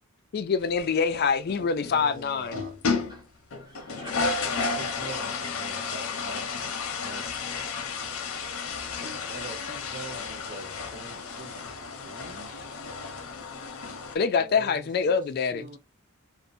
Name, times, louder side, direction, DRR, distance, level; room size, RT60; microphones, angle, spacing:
voice 1, 0.3-2.6 14.1-15.7, left 5 dB, 50° left, 0.3 m, -25 dB
sound 1, 0.6-2.0 2.4-3.3 3.5-14.2, left 4 dB, 85° left, 0.6 m, -33 dB
voice 2, 1.9-2.7 4.5-6.4 7.0-7.2 8.0-8.3 8.9-11.7 12.0-12.5 14.4-15.2 15.5-15.8, right 3 dB, 40° right, 0.4 m, -44 dB
voice 3, 3.1-5.0, right 1 dB, 20° right, 0.8 m, -51 dB
2.6 x 2.1 x 2.4 m
head